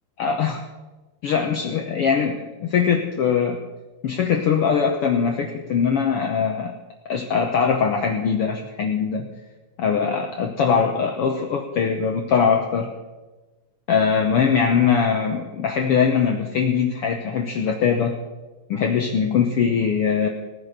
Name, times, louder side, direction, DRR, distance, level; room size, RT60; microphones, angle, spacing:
voice 1, 0.2-0.6 1.2-3.6 4.0-6.7 7.1-9.3 9.8-12.9 13.9-18.2 18.7-20.3, left 6 dB, 65° left, 3 dB, 1.6 m, -21 dB
18.0 x 9.6 x 6.6 m, 1.2 s
omnidirectional pair, 3.4 m